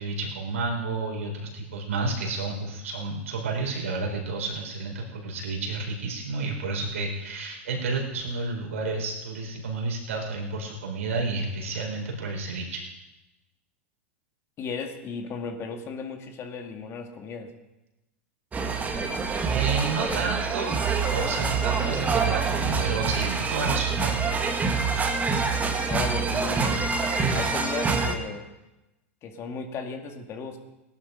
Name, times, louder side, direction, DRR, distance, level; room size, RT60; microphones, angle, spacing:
voice 1, 0.0-12.9 19.5-20.8 21.1-24.1, right 3 dB, 80° right, 0 dB, 4.5 m, -31 dB
voice 2, 14.6-17.5 25.9-26.8 27.3-28.5 29.2-30.6, left 5 dB, 35° left, 4 dB, 2.2 m, -35 dB
sound 1, 18.5-28.1, right 4 dB, 20° right, 1.9 m, -26 dB
18.0 x 11.5 x 5.2 m, 1.0 s
hypercardioid pair, 100°, 7 cm